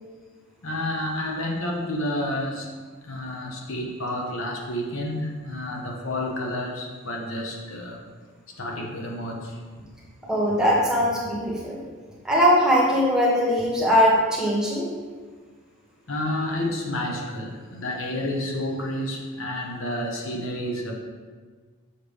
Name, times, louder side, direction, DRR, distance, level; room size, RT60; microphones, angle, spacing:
voice 1, 0.6-2.7 3.0-8.0 8.5-9.6 16.1-20.9, left 1 dB, 70° left, -1 dB, 1.1 m, -30 dB
voice 2, 10.3-11.8 12.2-14.9, equal, 5° right, -5 dB, 1.1 m, -20 dB
6.7 x 5.6 x 3.4 m, 1.5 s
head